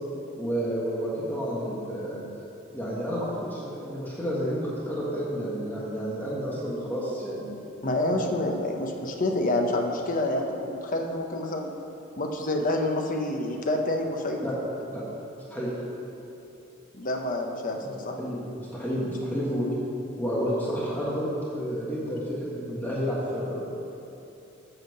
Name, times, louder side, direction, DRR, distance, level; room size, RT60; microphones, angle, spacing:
voice 1, 0.4-2.2 2.7-7.7 14.4-14.6 14.9-15.0 15.5-15.7 17.8-19.7 20.2-23.7, equal, 10° left, -7 dB, 1.5 m, -30 dB
voice 2, 7.8-11.7 12.2-14.4 16.9-17.8 18.0-18.2, left 1 dB, 40° left, 2 dB, 0.8 m, -27 dB
7.9 x 5.8 x 6.6 m, 2.8 s
head